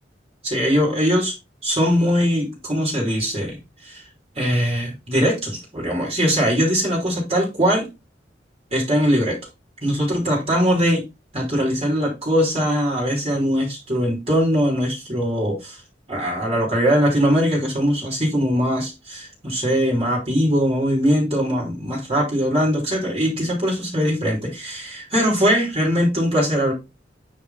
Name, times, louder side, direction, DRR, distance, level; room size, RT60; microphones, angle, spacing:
voice 1, 0.4-1.3 1.6-3.6 3.8-4.0 4.3-7.9 8.7-9.4 9.8-11.0 11.3-15.8 16.1-26.7, equal, 35° right, -2 dB, 3.2 m, -21 dB
9.1 x 3.9 x 4.1 m, 0.24 s
head